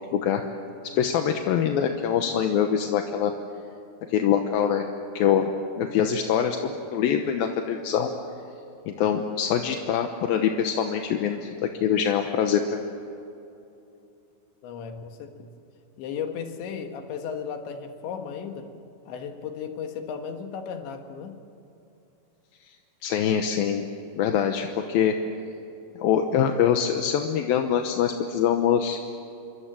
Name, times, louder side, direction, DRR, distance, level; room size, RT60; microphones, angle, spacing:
voice 1, 0.1-0.4 1.0-3.3 4.1-4.9 5.2-8.1 8.9-11.5 11.8-12.9 23.0-23.8 24.2-25.1 26.0-29.0, left 8 dB, 70° left, 5 dB, 2.5 m, -24 dB
voice 2, 14.6-15.5 16.0-18.7 19.1-21.4, left 6 dB, 85° left, 5 dB, 4.0 m, -35 dB
28.0 x 24.5 x 7.6 m, 2.8 s
omnidirectional pair, 5.0 m